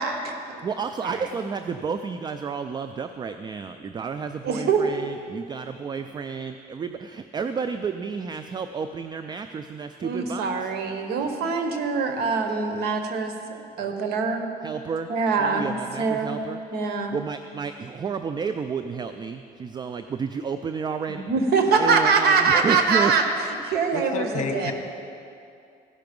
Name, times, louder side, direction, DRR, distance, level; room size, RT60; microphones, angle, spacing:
voice 1, 0.0-0.7 1.0-1.2 4.4-4.8 10.0-14.5 15.1-16.3 16.7-17.2 21.1-23.2 23.6-24.7, right 5 dB, 70° right, 6 dB, 1.1 m, -24 dB
voice 2, 0.6-10.7 14.6-15.1 15.3-16.6 17.1-21.2 21.8-23.2, right 5 dB, 25° right, 9 dB, 0.3 m, -31 dB
voice 3, 23.9-24.7, left 4 dB, 45° left, 4 dB, 1.2 m, -29 dB
15.5 x 5.8 x 5.3 m, 2.5 s
cardioid pair, 110°, 17 cm